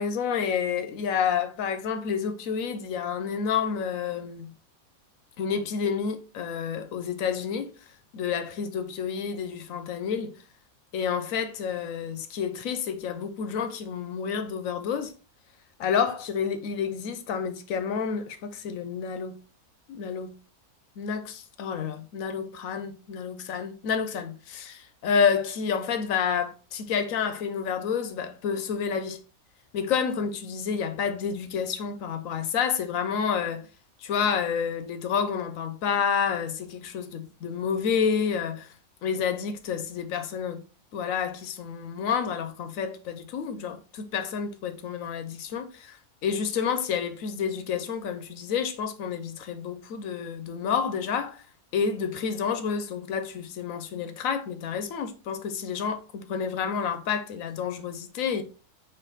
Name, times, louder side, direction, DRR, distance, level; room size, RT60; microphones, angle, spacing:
voice 1, 0.0-4.5 5.4-7.7 8.1-10.4 10.9-15.1 15.8-19.4 19.9-20.3 21.0-29.2 29.7-33.7 34.0-38.7 39.0-40.6 40.9-46.0 46.2-51.4 51.7-58.4, left 6 dB, 70° left, 1.0 m, -29 dB
4.5 x 2.8 x 3.9 m
omnidirectional pair, 1.5 m